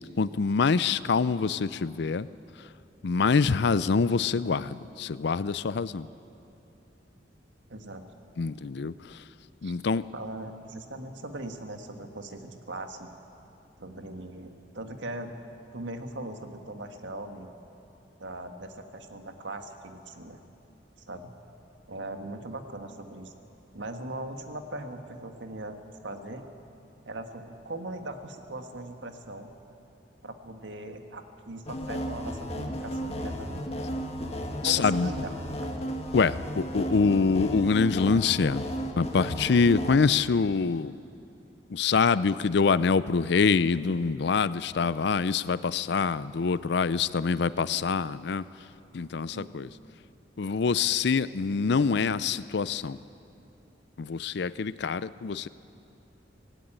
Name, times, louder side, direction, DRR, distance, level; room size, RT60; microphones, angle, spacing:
voice 1, 0.2-2.3 3.0-6.1 8.4-8.9 9.6-10.0 34.6-35.1 36.1-38.7 39.0-40.9 41.7-48.4 48.9-49.7 50.4-53.0 54.0-55.5, left 5 dB, 65° left, 17 dB, 0.5 m, -25 dB
voice 2, 7.7-8.0 9.6-9.7 10.1-13.1 13.8-15.3 15.7-17.5 18.2-20.4 21.1-21.3 21.9-23.3 23.7-25.8 26.0-26.4 27.0-29.5 30.2-33.6 34.6-35.7 49.3-49.5, right 2 dB, 85° right, 6 dB, 1.6 m, -39 dB
sound 1, 31.7-40.0, equal, 35° left, 1.6 m, -34 dB
18.5 x 16.5 x 8.9 m, 2.8 s
head